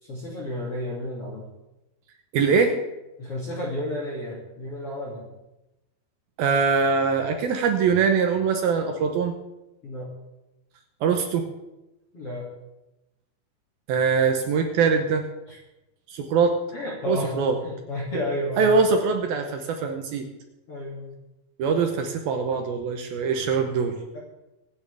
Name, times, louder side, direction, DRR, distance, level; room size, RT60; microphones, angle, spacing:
voice 1, 0.0-1.5 3.2-5.3 9.8-10.1 12.1-12.5 15.5-15.6 16.7-17.3 17.6-18.7 20.7-21.1 24.1-24.2, left 1 dB, 40° left, -5 dB, 2.9 m, -32 dB
voice 2, 2.3-2.7 6.4-9.3 11.0-11.5 13.9-15.2 16.1-16.6 17.1-17.6 18.6-20.2 21.6-24.0, right 5 dB, 70° right, 5 dB, 2.5 m, -22 dB
24.0 x 9.7 x 3.5 m, 0.97 s
omnidirectional pair, 5.1 m